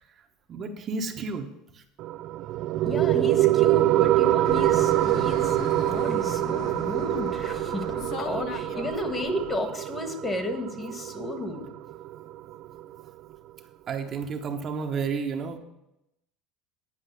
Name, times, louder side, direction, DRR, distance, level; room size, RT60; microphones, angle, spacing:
voice 1, 0.5-1.5 6.5-6.6 7.6-7.7 13.9-15.6, right 5 dB, 40° right, 3 dB, 1.1 m, -31 dB
sound 1, 2.0-13.0, right 15 dB, 55° right, 0.4 m, -25 dB
voice 2, 2.8-11.7, left 2 dB, 20° left, 6 dB, 1.6 m, -33 dB
Fixed-wing aircraft airplane, 4.4-9.6, left 8 dB, 55° left, 0.8 m, -39 dB
10.0 x 5.2 x 8.3 m, 0.85 s
supercardioid pair, 110°, 0 cm